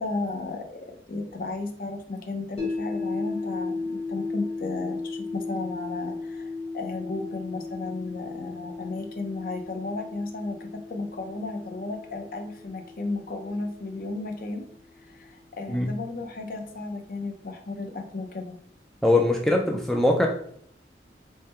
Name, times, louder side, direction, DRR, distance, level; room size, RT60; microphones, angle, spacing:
voice 1, 0.0-14.7 15.1-18.5, left 3 dB, 50° left, 4 dB, 0.5 m, -34 dB
sound 1, 2.6-14.7, left 3 dB, 35° left, 1.1 m, -36 dB
voice 2, 19.0-20.3, left 2 dB, ahead, 0 dB, 0.3 m, -21 dB
3.5 x 2.1 x 4.2 m, 0.62 s
head